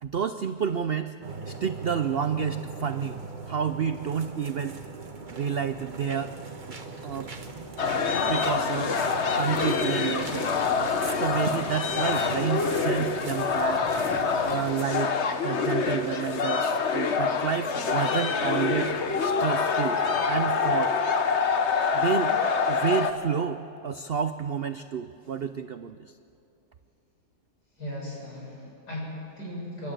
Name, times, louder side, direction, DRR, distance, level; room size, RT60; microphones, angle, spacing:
voice 1, 0.0-1.1 1.5-3.2 3.5-4.8 5.3-6.3 7.0-7.3 8.3-10.5 11.1-13.9 14.4-15.2 15.4-20.0 20.3-21.0 21.9-22.4 22.7-26.1, right 7 dB, 70° right, 10 dB, 0.5 m, -30 dB
sound 1, 1.2-14.9, right 4 dB, 30° right, 1.3 m, -39 dB
sound 2, 7.8-23.1, left 5 dB, 45° left, 1.2 m, -26 dB
voice 2, 27.8-29.9, left 1 dB, 80° left, -5 dB, 8.1 m, -37 dB
29.5 x 12.0 x 9.0 m, 2.8 s
omnidirectional pair, 1.7 m